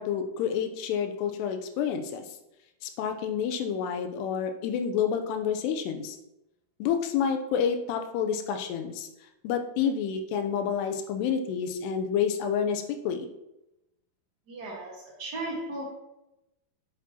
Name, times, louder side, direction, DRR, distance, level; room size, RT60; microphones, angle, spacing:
voice 1, 0.0-2.2 2.8-6.2 6.8-9.1 9.4-13.3, left 7 dB, 85° left, 6 dB, 2.9 m, -29 dB
voice 2, 14.5-15.9, right 2 dB, 60° right, -4 dB, 1.0 m, -36 dB
8.5 x 8.3 x 2.9 m, 0.90 s
omnidirectional pair, 4.7 m